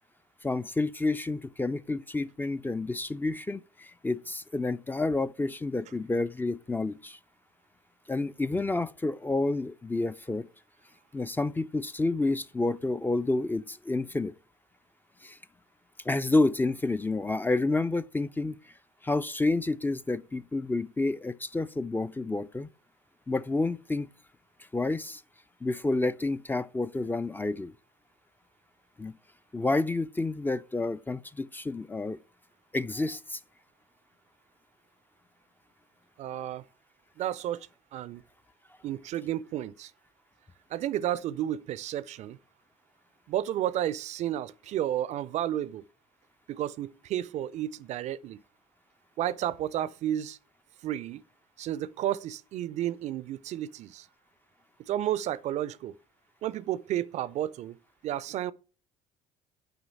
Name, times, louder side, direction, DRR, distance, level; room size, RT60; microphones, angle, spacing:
voice 1, 0.4-7.2 8.1-10.5 11.1-14.3 15.2-15.4 16.0-18.7 19.0-22.7 23.3-24.1 24.7-25.2 25.6-27.7 29.0-29.1 29.5-32.2 32.7-33.4, left 2 dB, 10° left, 0.4 m, -29 dB
voice 2, 36.2-36.6 37.2-38.2 38.8-39.9 40.7-42.4 43.3-45.8 46.5-48.4 49.2-50.4 50.8-51.2 51.6-54.1 54.9-55.9 56.4-57.8 58.0-58.5, right 12 dB, 50° right, 0.5 m, -32 dB
7.9 x 5.0 x 7.3 m
figure-of-eight pair, 55°, 16 cm